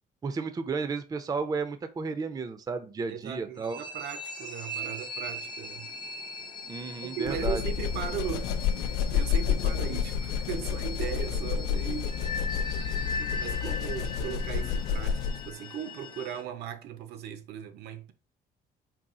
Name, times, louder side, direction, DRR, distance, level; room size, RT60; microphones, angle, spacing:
voice 1, 0.2-3.8 6.7-7.6, right 4 dB, 20° right, 0.4 m, -33 dB
voice 2, 3.1-5.9 7.0-8.5 8.8-12.2 12.8-18.1, right 9 dB, 75° right, 0.6 m, -38 dB
sound 1, 3.6-16.4, left 2 dB, 25° left, 0.6 m, -39 dB
sound 2, 7.3-15.5, left 7 dB, 80° left, 0.4 m, -30 dB
4.0 x 2.3 x 3.6 m
cardioid pair, 110°, 17 cm